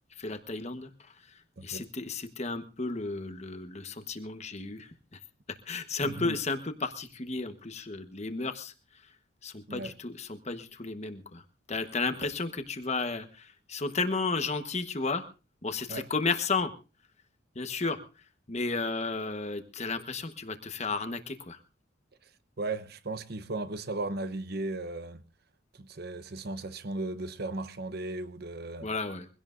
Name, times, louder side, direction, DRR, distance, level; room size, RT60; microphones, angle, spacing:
voice 1, 0.2-5.2 5.6-8.7 9.0-9.1 9.4-11.4 11.7-15.3 15.6-16.7 17.5-21.6 28.8-29.3, left 3 dB, 35° left, 1.2 m, -33 dB
voice 2, 1.6-1.9 6.0-6.4 9.7-9.9 15.9-16.0 22.2-22.3 22.6-25.2 25.7-28.9, right 2 dB, 55° right, 0.9 m, -36 dB
23.5 x 16.5 x 2.6 m
head